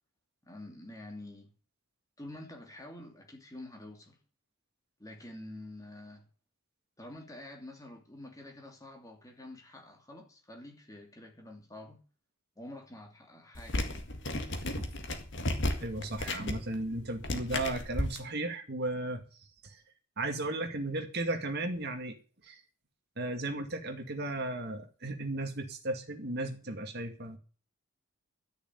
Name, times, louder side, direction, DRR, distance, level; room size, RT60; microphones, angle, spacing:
voice 1, 0.4-1.5 2.2-4.2 5.0-6.3 7.0-12.0 12.6-14.0, left 1 dB, 15° left, 2.7 m, -48 dB
sound 1, 13.5-18.2, left 1 dB, 55° left, 1.9 m, -34 dB
voice 2, 15.8-19.2 19.6-19.8 20.2-22.2 22.4-22.6 23.2-27.4, right 2 dB, 45° right, 2.1 m, -35 dB
13.0 x 6.8 x 9.2 m
head